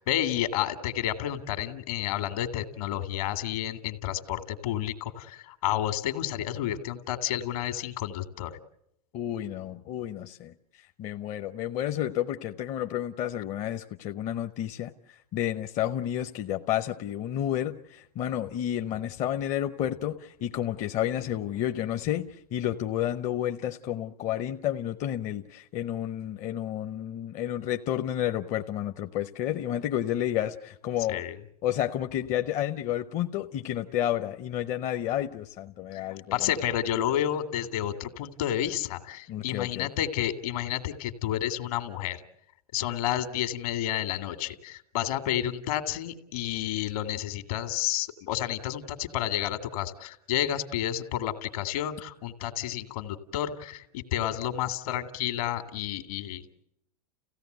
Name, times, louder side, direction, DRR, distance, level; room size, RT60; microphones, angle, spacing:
voice 1, 0.0-8.5 31.1-31.4 35.9-36.0 36.3-42.2 42.7-56.4, left 12 dB, 65° left, 9 dB, 2.2 m, -30 dB
voice 2, 9.1-31.2 31.6-36.5 39.3-39.9, left 11 dB, 40° left, 7 dB, 0.8 m, -31 dB
30.0 x 16.5 x 8.0 m, 0.79 s
hypercardioid pair, 115°, 20 cm